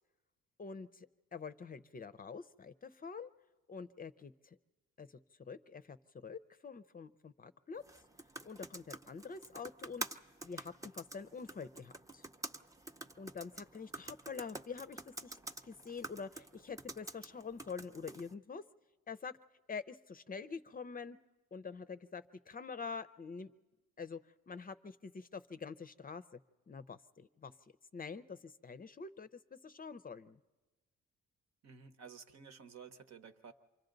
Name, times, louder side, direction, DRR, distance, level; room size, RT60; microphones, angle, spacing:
voice 1, 0.6-3.3 3.7-4.6 5.0-7.8 8.4-12.2 13.2-15.4 15.6-18.6 19.1-19.4 19.7-21.2 21.5-23.5 24.0-24.2 24.5-26.2 26.7-27.5 27.9-30.4, left 5 dB, 30° left, 13 dB, 0.6 m, -46 dB
sound 1, 7.8-18.3, right 2 dB, 10° right, 0.6 m, -48 dB
voice 2, 31.6-33.5, right 6 dB, 60° right, 9 dB, 1.1 m, -53 dB
28.0 x 24.0 x 3.9 m, 1.2 s
cardioid pair, 90°, 30 cm